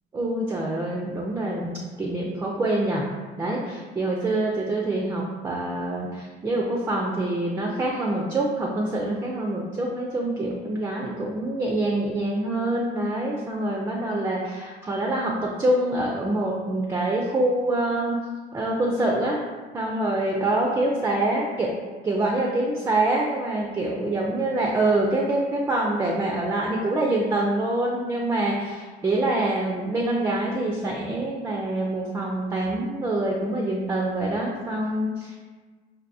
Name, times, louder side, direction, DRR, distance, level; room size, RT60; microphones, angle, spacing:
voice 1, 0.1-3.1 3.4-18.2 18.5-19.4 19.7-21.7 22.0-35.4, right 2 dB, 15° right, -1 dB, 0.3 m, -25 dB
4.7 x 2.6 x 2.6 m, 1.4 s
cardioid pair, 145°, 18 cm